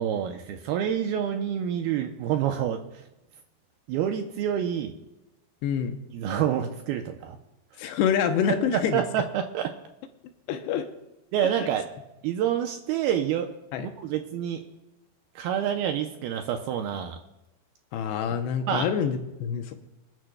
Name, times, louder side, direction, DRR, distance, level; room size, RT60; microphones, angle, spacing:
voice 1, 0.0-3.0 3.9-4.9 6.1-7.4 8.7-9.7 11.3-11.9 12.2-13.5 13.8-14.6 15.4-17.2 18.7-18.9, right 9 dB, 80° right, 5 dB, 2.3 m, -27 dB
voice 2, 5.6-6.0 7.8-9.0 10.5-10.9 11.6-11.7 13.7-13.9 17.9-19.7, left 7 dB, 80° left, 6 dB, 2.9 m, -26 dB
26.5 x 11.0 x 2.3 m, 0.93 s
omnidirectional pair, 5.0 m